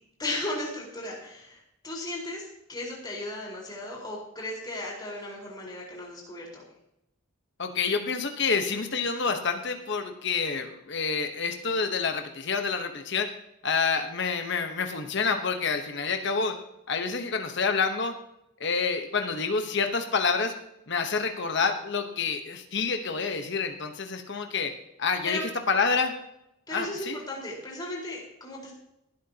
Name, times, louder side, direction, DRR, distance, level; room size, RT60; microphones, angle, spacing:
voice 1, 0.2-6.6 25.2-25.4 26.7-28.7, left 1 dB, 20° left, -3 dB, 4.5 m, -36 dB
voice 2, 7.6-13.3 13.6-16.5 16.9-18.1 18.6-20.5 20.9-24.7 25.0-26.1 26.7-27.1, left 5 dB, 55° left, 5 dB, 1.1 m, -28 dB
19.5 x 11.5 x 2.9 m, 0.83 s
head